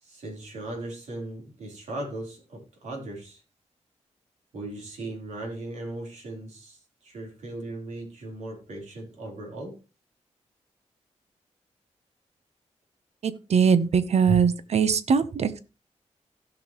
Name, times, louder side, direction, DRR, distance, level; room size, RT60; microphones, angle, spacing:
voice 1, 0.0-3.4 4.5-9.8 14.3-14.4, right 2 dB, 90° right, 4.0 m, -37 dB
voice 2, 13.2-15.6, right 6 dB, 65° right, 0.9 m, -22 dB
16.5 x 6.1 x 3.1 m
wide cardioid pair, 110°, 12 cm